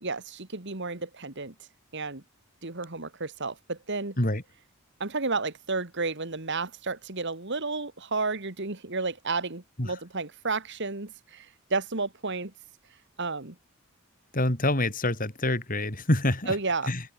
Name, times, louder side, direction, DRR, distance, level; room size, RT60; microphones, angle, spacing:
voice 1, 0.0-1.5 1.9-2.2 2.6-4.2 5.0-12.5 13.2-13.6 16.5-16.9, right 3 dB, 55° right, 2.2 m, -32 dB
voice 2, 14.3-16.6 16.9-17.0, left 1 dB, 40° left, 4.6 m, -26 dB
head